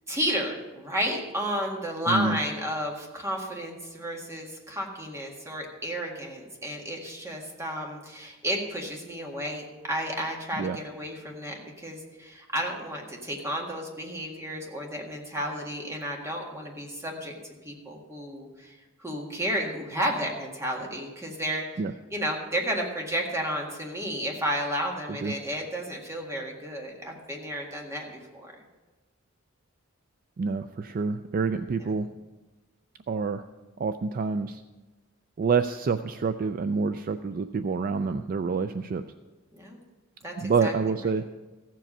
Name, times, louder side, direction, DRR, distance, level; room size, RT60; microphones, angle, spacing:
voice 1, 0.1-17.4 17.6-18.7 19.0-21.7 22.1-28.5 31.8-31.9 39.5-39.8 40.2-40.7 41.0-41.2, equal, 15° right, 0 dB, 1.8 m, -32 dB
voice 2, 2.1-2.4 10.6-10.8 21.8-21.9 25.2-25.3 30.4-32.1 33.1-33.4 33.8-34.6 35.4-39.0 40.4-41.2, right 4 dB, 45° right, 10 dB, 0.4 m, -27 dB
15.0 x 7.5 x 5.4 m, 1.2 s
head